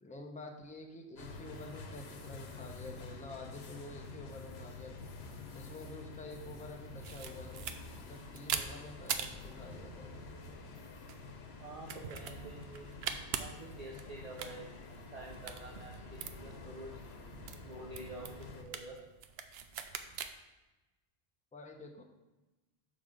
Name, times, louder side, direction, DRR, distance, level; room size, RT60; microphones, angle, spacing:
voice 1, 0.0-5.0 5.5-7.7 8.0-10.2 21.5-22.0, left 2 dB, 10° left, 2 dB, 0.7 m, -49 dB
sound 1, 1.2-18.6, left 3 dB, 80° left, 1.1 m, -49 dB
sound 2, 7.0-20.3, right 7 dB, 75° right, 0.8 m, -44 dB
voice 2, 11.6-14.7 15.1-16.9 17.6-19.0, right 2 dB, 40° right, -2 dB, 0.9 m, -48 dB
7.6 x 3.9 x 6.5 m, 1.1 s
omnidirectional pair, 1.0 m